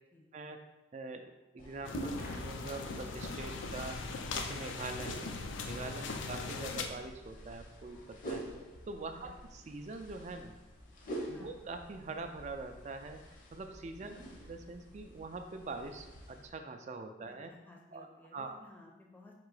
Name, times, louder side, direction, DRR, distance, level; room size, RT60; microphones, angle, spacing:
voice 1, 0.9-4.0 4.3-8.5 8.9-10.5 11.3-17.5 17.9-18.1 18.3-18.6, right 3 dB, 35° right, 6 dB, 0.3 m, -44 dB
sound 1, 1.6-16.5, right 1 dB, 45° left, 0.7 m, -47 dB
sound 2, 1.8-6.9, left 4 dB, 85° left, 0.4 m, -40 dB
voice 2, 14.1-14.4 17.5-19.3, left 2 dB, 10° left, -1 dB, 0.5 m, -57 dB
3.7 x 2.8 x 4.7 m, 1.0 s
head